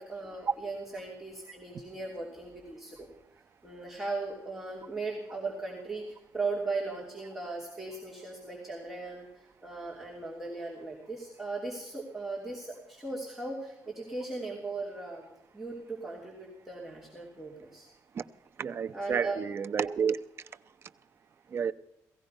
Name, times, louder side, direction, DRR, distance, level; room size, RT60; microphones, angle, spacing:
voice 1, 0.0-3.1 3.6-15.2 15.5-17.9 18.9-19.4, right 3 dB, 5° right, 3.0 m, -38 dB
voice 2, 18.6-20.2 21.5-21.7, right 7 dB, 40° right, 0.6 m, -30 dB
17.5 x 15.0 x 5.3 m
cardioid pair, 160°, 6 cm